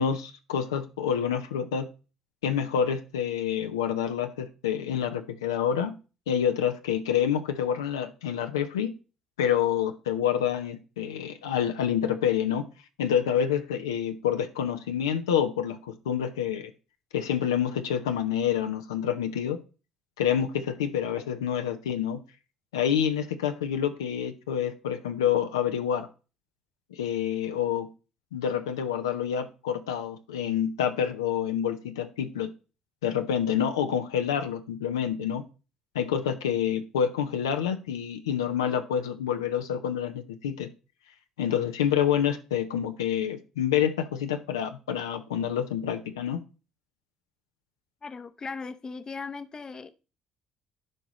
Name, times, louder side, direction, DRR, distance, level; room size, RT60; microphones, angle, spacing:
voice 1, 0.0-1.9 2.4-5.9 6.3-8.9 9.4-12.7 13.0-16.7 17.1-19.6 20.2-22.2 22.7-26.1 26.9-27.9 28.3-32.5 33.0-35.5 35.9-40.7 41.4-46.4, left 9 dB, 90° left, 7 dB, 0.6 m, -27 dB
voice 2, 48.0-49.9, left 4 dB, 30° left, 11 dB, 0.7 m, -38 dB
12.0 x 4.7 x 3.1 m, 0.33 s
hypercardioid pair, 60°, 2 cm